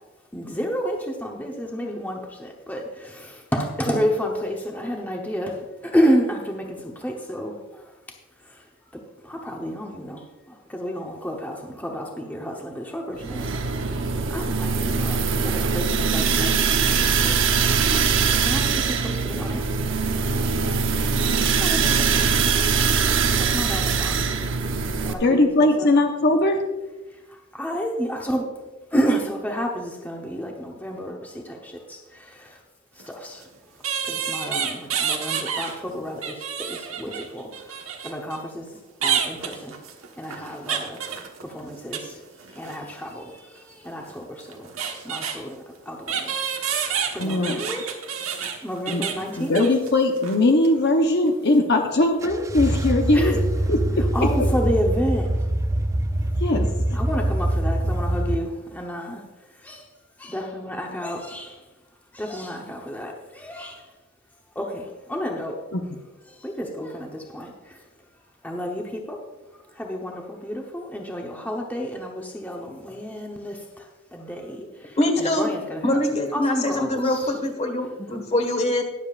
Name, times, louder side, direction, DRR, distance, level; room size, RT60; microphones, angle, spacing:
voice 1, 0.3-5.6 5.8-7.5 9.2-10.2 10.7-13.5 14.3-17.7 18.2-19.6 21.6-22.1 23.3-24.3 25.0-25.9 27.5-28.4 28.9-32.6 33.1-33.4 34.0-37.5 38.0-38.8 39.0-39.8 40.2-41.0 41.4-42.1 42.6-44.7 45.0-47.8 48.6-49.7 53.1-53.4 54.1-55.3 56.9-59.2 59.6-59.8 60.2-61.6 62.1-63.8 64.6-65.6 66.4-67.5 68.4-69.2 69.8-73.9 74.1-74.7 75.2-76.0 76.3-77.2, equal, 10° left, 0 dB, 0.9 m, -30 dB
sound 1, 13.2-25.1, right 5 dB, 65° right, 0.8 m, -22 dB
voice 2, 25.2-26.6 47.2-47.6 48.9-49.0 49.4-53.4 53.7-54.0 56.4-57.0 65.7-65.8, left 2 dB, 55° left, 3 dB, 0.9 m, -20 dB
sound 2, 33.0-33.1 33.8-35.8 36.1-38.4 39.0-42.1 42.4-42.8 44.1-44.2 44.4-45.4 46.1-49.9 50.2-50.4 50.6-50.8, right 7 dB, 85° right, 1.3 m, -29 dB
sound 3, 52.2-58.4, right 1 dB, 15° right, 0.4 m, -24 dB
voice 3, 75.0-75.5 75.8-78.8, left 1 dB, 30° left, 4 dB, 1.6 m, -23 dB
21.0 x 7.3 x 2.5 m, 1.1 s
head